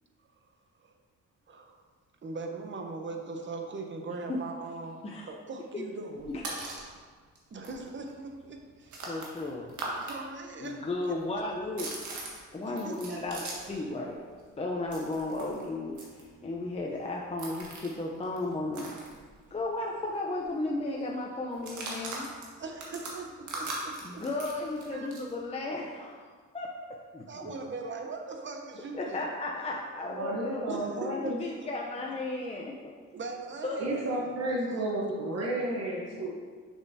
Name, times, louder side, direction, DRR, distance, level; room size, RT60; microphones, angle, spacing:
voice 1, 1.5-1.8 2.2-6.3 6.6-6.9 7.5-9.0 9.9-11.2 12.6-13.2 13.8-13.9 22.6-24.3 24.9-25.1 27.3-29.2 30.7-31.7 33.1-34.9, right 3 dB, 40° right, 4 dB, 0.9 m, -41 dB
sound 1, 6.1-6.9 7.3-7.4 7.6-10.2 10.4-13.8 14.1-19.7 20.0-20.1 20.4-20.8 21.5-25.3, right 2 dB, 75° right, 1.6 m, -41 dB
voice 2, 9.0-9.7 10.6-11.9 12.5-13.4 13.7-14.2 14.6-19.0 19.5-22.3 24.0-26.7 27.1-27.5 28.9-30.6 31.1-32.9 33.6-33.8 35.4-35.5, left 2 dB, 20° left, -1 dB, 0.6 m, -34 dB
voice 3, 30.0-31.4 33.8-36.3, right 1 dB, 55° right, -4 dB, 1.1 m, -32 dB
6.6 x 6.3 x 2.7 m, 1.5 s
cardioid pair, 90°, 30 cm